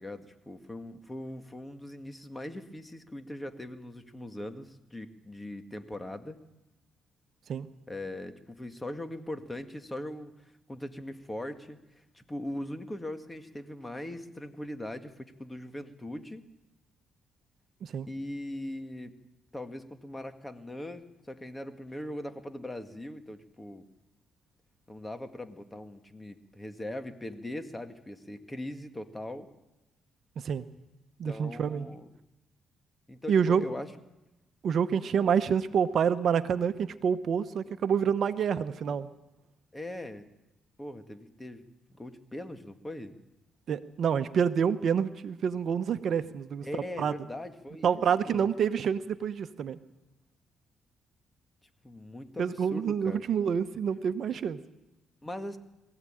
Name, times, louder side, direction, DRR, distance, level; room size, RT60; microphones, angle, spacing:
voice 1, 0.0-6.4 7.9-10.3 10.7-11.8 12.1-16.5 18.1-19.1 19.5-23.9 24.9-29.5 31.3-32.1 33.1-33.9 39.7-40.3 40.8-41.6 41.9-43.1 46.6-48.5 51.8-53.3 55.2-55.6, left 1 dB, 15° left, 8 dB, 1.9 m, -40 dB
voice 2, 31.2-31.9 33.3-33.6 34.6-39.1 43.7-46.6 47.0-47.1 47.8-49.8 52.4-54.6, right 7 dB, 60° right, 11 dB, 1.0 m, -27 dB
22.5 x 16.0 x 9.0 m, 0.97 s
cardioid pair, 90°, 0 cm